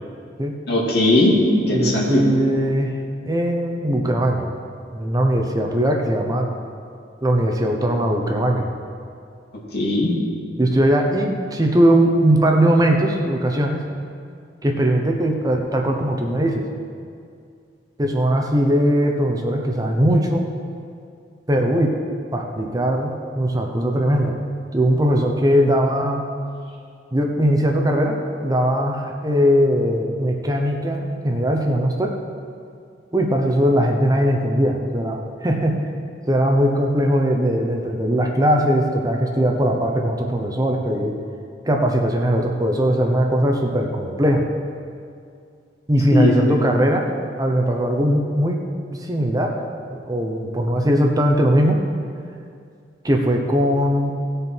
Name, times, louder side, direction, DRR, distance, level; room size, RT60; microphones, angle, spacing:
voice 1, 0.7-1.3 1.7-2.2 9.7-10.1 46.1-46.6, left 2 dB, 60° left, -3 dB, 2.5 m, -18 dB
voice 2, 1.7-2.9 3.3-4.5 4.9-6.5 7.2-8.7 10.6-13.8 14.6-16.7 18.0-20.5 21.5-21.9 22.3-24.4 24.7-26.2 27.1-32.1 33.1-35.8 36.3-41.2 41.6-44.4 45.9-47.1 47.4-48.6 49.1-49.6 49.9-51.8 53.0-54.1, equal, 20° right, 1 dB, 0.8 m, -20 dB
17.5 x 6.7 x 4.5 m, 2.3 s
head